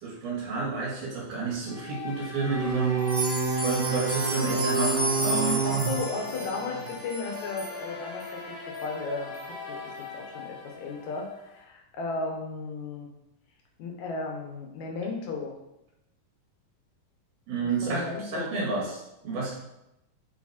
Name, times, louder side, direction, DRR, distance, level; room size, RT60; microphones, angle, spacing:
voice 1, 0.0-3.0 3.6-5.6 17.5-19.5, right 4 dB, 90° right, -3 dB, 3.6 m, -30 dB
sound 1, 1.7-11.6, left 4 dB, 50° left, 1.3 m, -40 dB
sound 2, 2.4-6.9, right 4 dB, 70° right, 1.0 m, -28 dB
sound 3, 3.0-7.7 8.2-8.3 8.7-8.8 9.3-9.4, right 1 dB, 25° right, 1.4 m, -33 dB
voice 2, 5.6-9.3 9.7-13.1 13.8-15.6 17.8-18.5, left 3 dB, 70° left, 1 dB, 2.4 m, -35 dB
7.4 x 5.1 x 4.3 m, 0.86 s
omnidirectional pair, 3.5 m